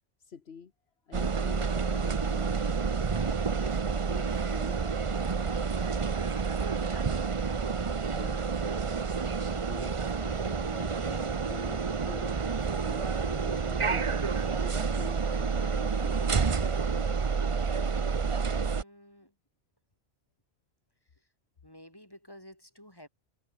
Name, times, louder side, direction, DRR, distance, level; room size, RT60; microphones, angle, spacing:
voice 1, 0.2-0.7 1.1-3.1 3.4-5.5 8.2-8.6 9.5-16.4, left 6 dB, 75° left, 1.6 m, -48 dB
sound 1, 1.1-18.8, right 5 dB, 35° right, 0.8 m, -29 dB
voice 2, 6.9-7.2 8.0-8.6 18.5-19.3 21.6-23.1, equal, 20° left, 8.1 m, -52 dB
omnidirectional pair, 1.1 m